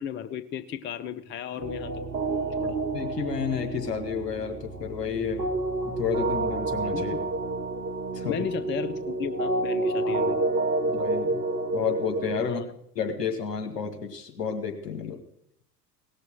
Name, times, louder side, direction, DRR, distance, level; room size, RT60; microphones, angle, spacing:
voice 1, 0.0-2.0 2.6-2.8 6.9-7.2 8.3-10.5 12.4-12.6, left 8 dB, 25° left, 12 dB, 0.6 m, -34 dB
sound 1, 1.6-12.5, right 2 dB, 80° right, 1.0 m, -29 dB
voice 2, 2.7-5.5 5.8-7.2 8.1-8.5 10.0-10.2 10.9-11.4 11.7-12.6 13.0-15.2, left 7 dB, 75° left, 5 dB, 2.0 m, -31 dB
18.0 x 6.5 x 7.6 m, 0.73 s
figure-of-eight pair, 75°, 48 cm